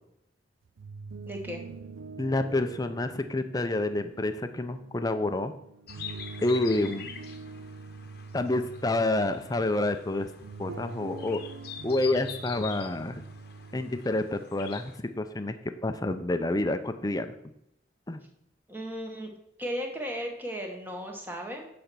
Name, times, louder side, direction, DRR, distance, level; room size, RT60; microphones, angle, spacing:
sound 1, 0.6-14.0, right 4 dB, 80° right, 0.4 m, -44 dB
voice 1, 1.3-1.6 18.7-19.3 19.6-21.7, equal, 10° right, 2 dB, 1.3 m, -35 dB
voice 2, 2.2-5.5 6.4-7.1 8.3-10.3 10.6-11.4 11.8-13.2 13.7-15.6 15.8-17.3 18.1-18.2, left 2 dB, 20° left, 9 dB, 0.5 m, -28 dB
sound 2, 5.9-15.0, left 7 dB, 50° left, 0.9 m, -45 dB
8.1 x 4.3 x 6.8 m, 0.77 s
head